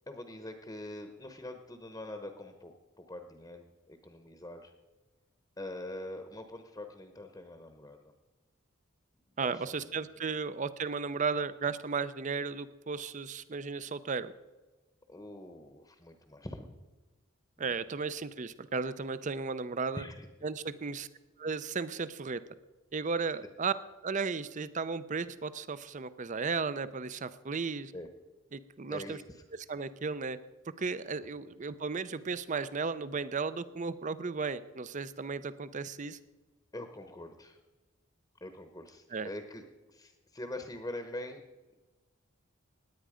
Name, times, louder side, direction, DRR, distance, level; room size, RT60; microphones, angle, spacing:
voice 1, 0.1-2.7 3.0-4.7 5.6-8.1 9.3-10.1 15.1-16.7 17.6-17.7 18.0-18.1 19.9-20.3 23.2-23.4 27.9-28.1 28.9-29.4 36.7-37.6 38.4-41.4, left 1 dB, 15° left, 6 dB, 0.9 m, -44 dB
voice 2, 9.4-14.3 17.6-20.1 20.4-21.1 21.4-22.4 22.9-23.7 24.0-27.9 28.5-29.2 29.7-30.4 30.8-36.2 39.1-39.3, right 4 dB, 35° right, 15 dB, 0.5 m, -35 dB
17.5 x 10.0 x 5.0 m, 1.2 s
head